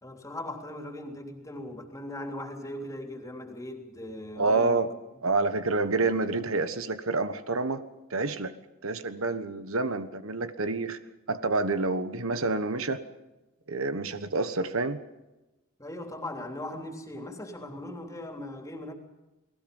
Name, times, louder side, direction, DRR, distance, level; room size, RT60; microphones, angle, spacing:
voice 1, 0.0-4.9 6.0-6.1 15.8-18.9, left 1 dB, 15° left, 4 dB, 3.3 m, -39 dB
voice 2, 4.4-4.9 5.2-7.8 8.1-8.5 8.8-11.0 11.3-13.0 13.7-15.0, right 3 dB, 75° right, 11 dB, 1.3 m, -28 dB
30.0 x 19.5 x 5.5 m, 1.1 s
head